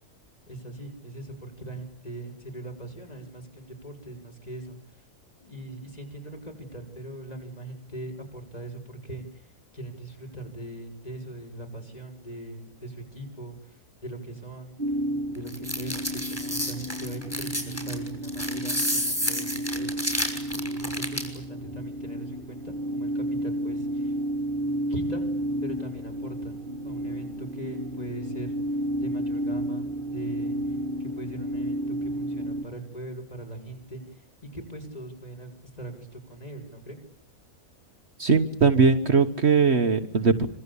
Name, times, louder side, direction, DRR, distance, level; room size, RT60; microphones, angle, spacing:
voice 1, 0.5-4.8 5.4-9.2 9.7-13.5 14.0-14.7 15.3-19.9 20.2-24.1 24.9-25.3 25.6-26.6 26.8-28.6 29.0-30.6 31.0-34.0 34.5-37.0, right 2 dB, 25° left, 4 dB, 6.7 m, -40 dB
sound 1, 14.8-32.6, equal, 35° right, 2.0 m, -32 dB
sound 2, 15.5-21.4, equal, 10° left, 6.3 m, -30 dB
voice 2, 38.2-40.5, right 5 dB, 50° right, 8 dB, 1.6 m, -20 dB
26.0 x 25.5 x 8.5 m, 0.64 s
omnidirectional pair, 1.4 m